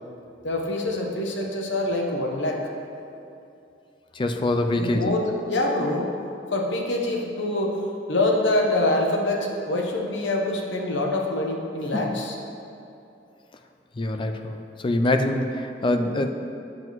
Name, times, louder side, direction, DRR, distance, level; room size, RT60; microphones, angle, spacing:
voice 1, 0.4-2.6 4.7-6.1 6.5-7.8 8.1-12.4, left 1 dB, 85° left, 1 dB, 0.9 m, -25 dB
voice 2, 4.2-5.1 11.9-12.1 14.0-14.6 14.8-16.3, left 1 dB, 30° left, 6 dB, 0.4 m, -24 dB
7.7 x 7.6 x 3.0 m, 2.7 s
head